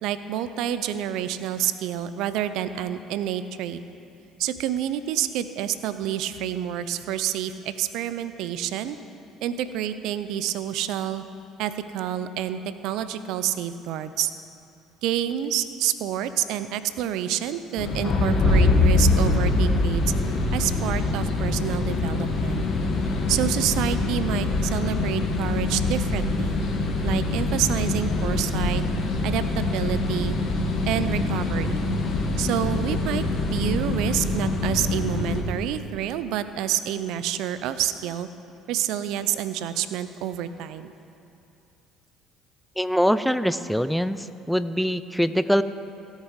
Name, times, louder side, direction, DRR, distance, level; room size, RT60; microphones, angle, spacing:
voice 1, 0.0-3.8 4.4-9.0 9.4-11.2 11.6-14.3 15.0-20.0 20.5-22.6 23.3-26.6 27.0-28.8 29.2-30.4 30.9-31.8 32.4-33.3 33.5-38.3 38.7-40.9, right 11 dB, 70° right, 12 dB, 0.5 m, -28 dB
sound 1, 17.8-35.4, left 2 dB, 50° left, 1.6 m, -24 dB
voice 2, 42.8-45.6, equal, ahead, 13 dB, 0.4 m, -23 dB
17.0 x 6.6 x 4.7 m, 2.6 s
hypercardioid pair, 65°, 0 cm